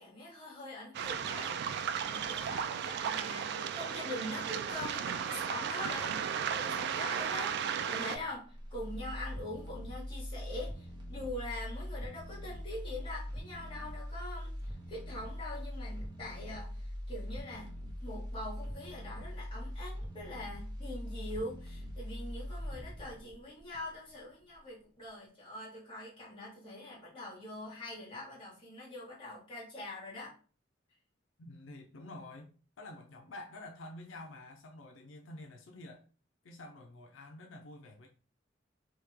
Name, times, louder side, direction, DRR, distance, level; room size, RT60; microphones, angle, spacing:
voice 1, 0.0-17.7 18.0-30.3, left 1 dB, 25° left, 1.8 m, -44 dB
Waves surf, 0.9-8.2, right 7 dB, 60° right, 0.3 m, -35 dB
sound 1, 8.1-24.2 24.5-24.6, equal, 25° right, 0.8 m, -42 dB
voice 2, 31.4-36.1 36.4-38.1, left 2 dB, 85° left, 0.5 m, -49 dB
3.1 x 2.8 x 3.5 m
head